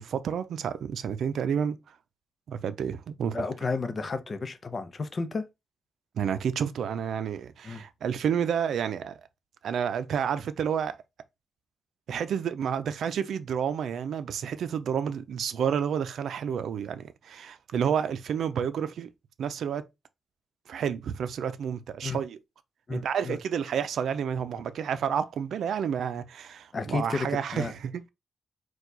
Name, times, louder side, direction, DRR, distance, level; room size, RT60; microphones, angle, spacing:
voice 1, 0.0-1.8 2.5-3.4 6.2-9.2 9.6-11.0 12.1-19.1 19.4-19.9 20.7-22.4 22.9-28.1, right 8 dB, 80° right, 0.5 m, -30 dB
voice 2, 3.3-5.4 7.6-7.8 22.0-22.2 22.9-23.4 26.7-27.7, left 4 dB, 35° left, 0.6 m, -32 dB
4.6 x 2.3 x 3.9 m
cardioid pair, 120°, 0 cm